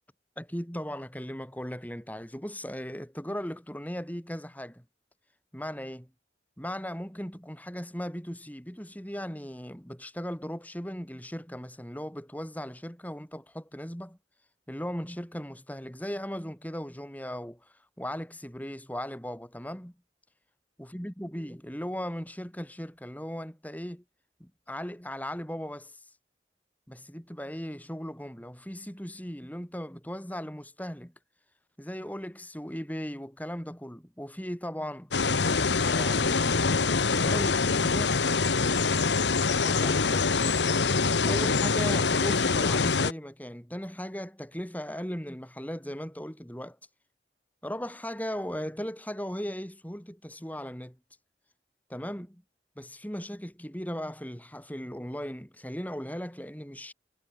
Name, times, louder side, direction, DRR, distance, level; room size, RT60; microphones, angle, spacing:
voice 1, 0.4-4.8 5.5-6.1 6.6-14.2 14.7-19.9 20.8-24.0 24.4-26.0 26.9-31.1 31.8-35.1 35.8-38.2 39.3-40.7 41.2-46.8 47.6-51.0 51.9-52.4 52.8-56.9, equal, 10° left, 5.3 m, -37 dB
sound 1, 35.1-43.1, left 4 dB, 85° left, 1.2 m, -25 dB
head